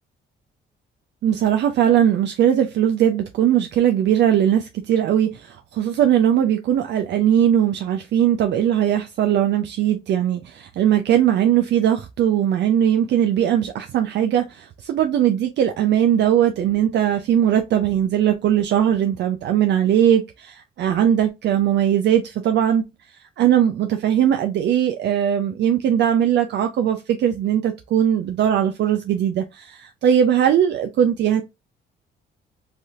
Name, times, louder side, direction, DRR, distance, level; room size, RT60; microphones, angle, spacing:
voice 1, 1.2-22.8 23.4-31.4, right 10 dB, 60° right, 0.4 m, -19 dB
3.3 x 2.7 x 2.3 m
cardioid pair, 90°, 20 cm